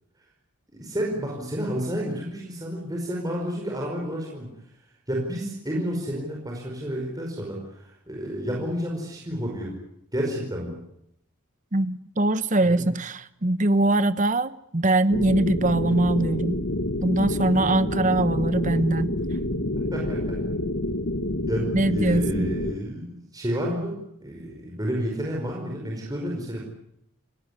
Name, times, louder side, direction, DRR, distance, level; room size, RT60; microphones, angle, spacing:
voice 1, 0.7-4.5 5.1-9.7 10.1-10.8 12.6-12.9 19.7-20.4 21.5-23.1 23.3-26.6, equal, 15° right, -2 dB, 5.0 m, -30 dB
voice 2, 11.7-16.6 17.0-19.1 21.7-22.5, right 2 dB, 35° right, 14 dB, 1.0 m, -22 dB
sound 1, 15.1-22.7, left 1 dB, 60° left, 1.7 m, -28 dB
29.0 x 18.0 x 9.8 m, 0.76 s
head